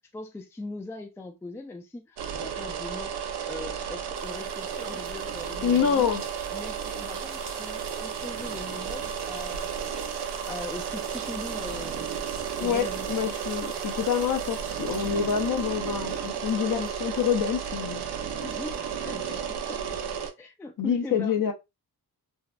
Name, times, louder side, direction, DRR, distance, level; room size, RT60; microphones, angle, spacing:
voice 1, 0.1-3.2 3.5-6.1 6.5-10.0 10.5-12.2 12.6-13.1 18.4-19.8 20.4-21.3, left 2 dB, 5° left, 0.3 m, -40 dB
sound 1, 2.2-20.3, right 7 dB, 80° right, 0.5 m, -33 dB
sound 2, 4.1-18.2 18.5-19.7, right 3 dB, 35° right, 0.8 m, -48 dB
voice 2, 5.6-6.2 12.6-18.0 20.8-21.5, left 7 dB, 55° left, 0.6 m, -26 dB
2.8 x 2.1 x 2.2 m
cardioid pair, 75°, 39 cm